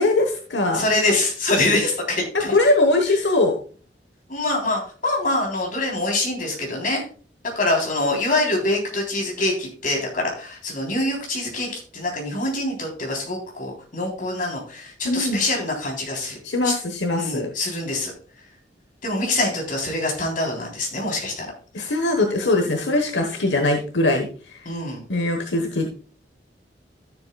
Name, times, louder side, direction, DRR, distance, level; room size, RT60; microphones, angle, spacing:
voice 1, 0.0-0.8 2.3-3.6 15.0-15.4 16.4-17.5 21.7-24.7 25.1-25.9, left 2 dB, 85° left, 4 dB, 1.1 m, -21 dB
voice 2, 0.7-2.6 4.3-7.0 7.6-16.4 16.6-16.7 17.2-18.1 19.0-21.5 21.8-21.9 24.7-25.0, left 2 dB, 50° left, 0 dB, 3.5 m, -25 dB
13.0 x 7.2 x 2.3 m, 0.40 s
head